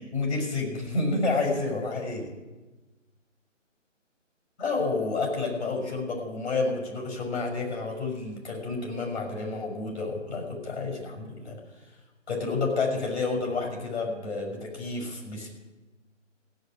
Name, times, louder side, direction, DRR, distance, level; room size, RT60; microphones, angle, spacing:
voice 1, 0.0-2.3 4.6-11.6 12.3-15.5, left 3 dB, 55° left, 0 dB, 5.9 m, -30 dB
15.5 x 7.7 x 10.0 m, 1.2 s
figure-of-eight pair, 155°, 39 cm